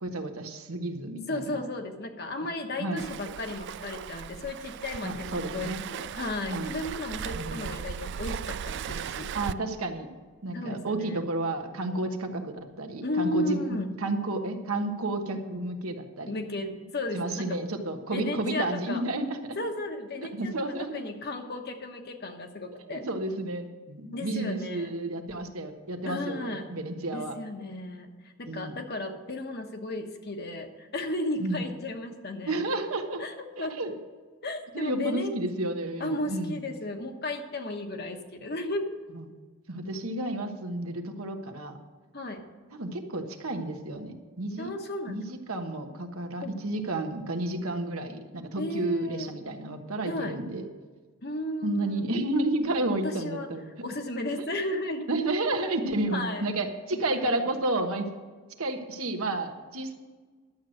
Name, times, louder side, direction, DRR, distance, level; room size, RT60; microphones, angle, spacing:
voice 1, 0.0-1.7 2.8-3.0 5.0-5.8 6.4-6.7 7.3-7.6 9.3-10.1 10.4-16.4 17.1-19.6 20.3-20.9 22.9-27.4 28.4-28.7 31.4-31.6 32.5-33.2 33.6-33.9 34.7-36.6 39.7-41.8 42.7-44.7 45.1-50.7 51.6-53.7 54.4-54.5 55.1-58.1 58.6-59.9, right 2 dB, 85° right, 5 dB, 1.3 m, -31 dB
voice 2, 1.3-9.3 10.5-11.2 13.0-13.9 16.3-17.6 18.1-19.0 19.6-20.6 20.9-23.1 24.1-24.9 26.0-26.7 27.1-32.6 33.2-33.8 34.4-35.3 36.0-38.9 42.1-42.4 44.6-45.2 46.4-46.5 48.6-49.3 50.1-50.4 51.2-52.1 53.0-53.5 53.8-55.1 56.1-56.4 56.9-57.5, left 1 dB, 50° left, 5 dB, 1.2 m, -34 dB
Waves surf, 3.0-9.5, right 8 dB, 55° right, 0.3 m, -37 dB
11.5 x 7.8 x 6.4 m, 1.4 s
head